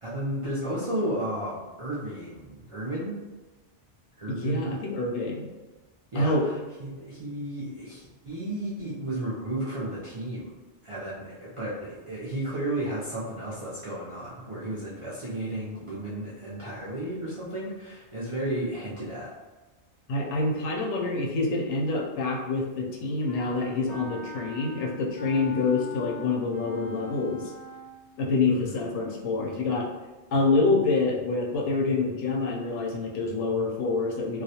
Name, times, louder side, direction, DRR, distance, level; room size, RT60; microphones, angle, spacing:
voice 1, 0.0-3.2 4.2-4.7 6.1-10.5 10.8-19.3 28.5-28.8, right 1 dB, 55° right, -9 dB, 0.3 m, -33 dB
voice 2, 4.4-5.5 6.1-6.5 20.1-27.4 28.2-29.9 30.3-34.4, left 3 dB, 75° left, -1 dB, 0.9 m, -26 dB
Wind instrument woodwind instrument, 23.3-28.1, left 1 dB, 50° left, 0.5 m, -42 dB
2.3 x 2.1 x 2.7 m, 1.2 s
omnidirectional pair, 1.2 m